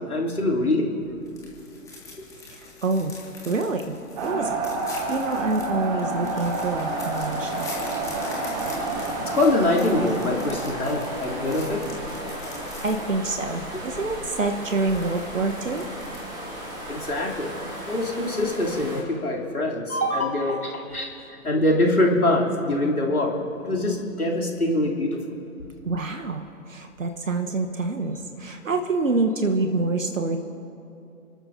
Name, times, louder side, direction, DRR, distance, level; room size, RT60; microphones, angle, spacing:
voice 1, 0.1-0.9 9.2-11.8 16.9-17.5 17.9-21.1 21.4-25.2, left 1 dB, 80° left, -2 dB, 3.1 m, -24 dB
sound 1, 1.0-16.5, left 3 dB, 5° left, 1.9 m, -43 dB
voice 2, 2.8-3.1 3.4-3.9 4.2-4.6 5.1-7.7 12.8-15.9 25.8-30.4, right 3 dB, 60° right, 6 dB, 1.1 m, -26 dB
sound 2, 4.2-13.1, right 3 dB, 25° right, 1.7 m, -30 dB
sound 3, 4.9-19.0, equal, 10° right, 2.0 m, -37 dB
30.0 x 13.0 x 2.7 m, 2.6 s
figure-of-eight pair, 135°, 43 cm